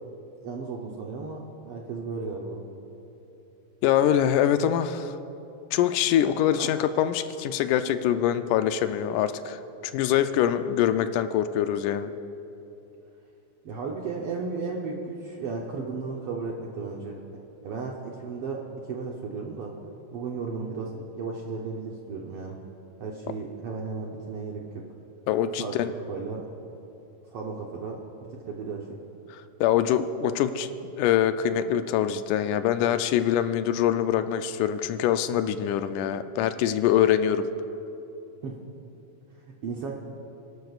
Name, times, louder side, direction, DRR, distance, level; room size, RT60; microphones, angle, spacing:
voice 1, 0.4-2.6 6.6-6.8 13.6-17.2 17.6-19.7 20.1-22.6 23.0-24.8 25.6-25.7 26.1-26.5 27.3-28.0 28.4-28.8 38.4-38.5 39.6-39.9, right 4 dB, 70° right, -1 dB, 1.4 m, -34 dB
voice 2, 3.8-5.1 5.7-9.6 9.9-12.1 25.3-25.9 29.6-30.7 31.0-37.5, left 10 dB, 85° left, 10 dB, 2.0 m, -24 dB
27.5 x 12.0 x 2.4 m, 2.9 s
omnidirectional pair, 3.6 m